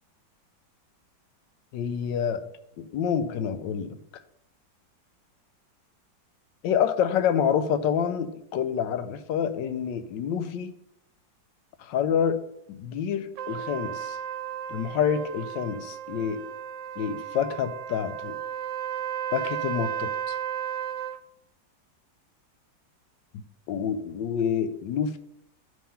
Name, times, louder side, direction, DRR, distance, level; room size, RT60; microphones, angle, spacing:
voice 1, 1.7-2.4 2.8-4.0 6.6-10.7 11.8-12.4 12.7-14.2 14.7-16.4 17.0-18.4 19.3-20.4 23.7-25.2, left 8 dB, 80° left, 11 dB, 1.2 m, -27 dB
Trumpet, 13.4-21.2, right 9 dB, 80° right, 1.3 m, -34 dB
10.0 x 3.7 x 5.6 m, 0.80 s
omnidirectional pair, 2.0 m